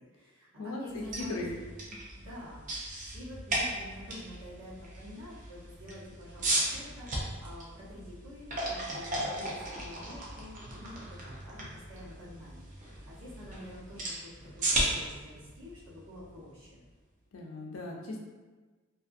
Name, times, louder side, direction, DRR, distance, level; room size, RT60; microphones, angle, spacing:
voice 1, 0.0-1.4 2.1-16.8, left 1 dB, 65° right, -8 dB, 1.0 m, -48 dB
voice 2, 0.6-1.5 17.3-18.2, left 2 dB, 80° left, 0 dB, 0.5 m, -38 dB
sound 1, 0.9-16.8, right 1 dB, 40° right, 0.6 m, -36 dB
2.6 x 2.6 x 2.5 m, 1.3 s
head